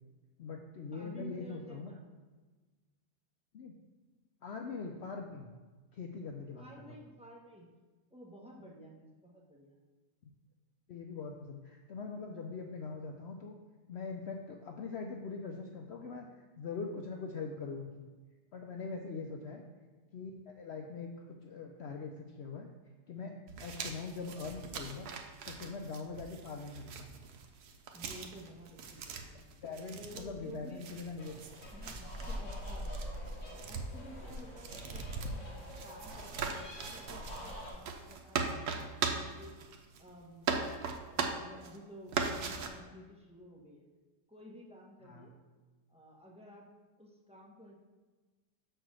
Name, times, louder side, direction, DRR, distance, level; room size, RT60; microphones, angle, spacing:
voice 1, 0.4-1.9 3.5-3.7 4.4-5.5 5.9-7.0 10.9-13.6 13.9-16.3 16.6-18.1 18.5-19.6 20.1-21.1 21.4-22.7 23.1-25.1 25.5-27.1 29.6-31.4 45.0-45.3, left 4 dB, 80° left, 2 dB, 0.6 m, -42 dB
voice 2, 0.9-2.1 6.6-7.7 8.1-9.8 27.9-29.4 29.9-30.8 31.7-32.8 33.5-35.5 35.8-39.5 40.0-42.1 42.4-43.8 44.3-45.4 45.9-46.6 47.0-47.7, equal, 5° right, -2 dB, 1.0 m, -53 dB
sound 1, 23.5-40.1 40.4-41.8 42.1-42.7, right 5 dB, 75° right, 1.3 m, -40 dB
sound 2, 31.2-37.7, equal, 50° left, 1.9 m, -44 dB
6.7 x 4.5 x 6.2 m, 1.3 s
omnidirectional pair, 1.8 m